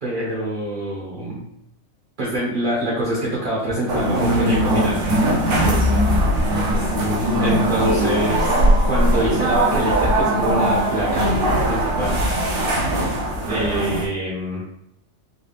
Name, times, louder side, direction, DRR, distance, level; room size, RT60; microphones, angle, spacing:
voice 1, 0.0-1.4 2.2-5.0 7.4-11.3 11.6-12.2 13.5-14.6, right 1 dB, 40° right, -5 dB, 0.9 m, -25 dB
sound 1, 3.9-14.0, right 1 dB, 65° right, 1.1 m, -19 dB
3.9 x 2.3 x 3.3 m, 0.74 s
omnidirectional pair, 1.4 m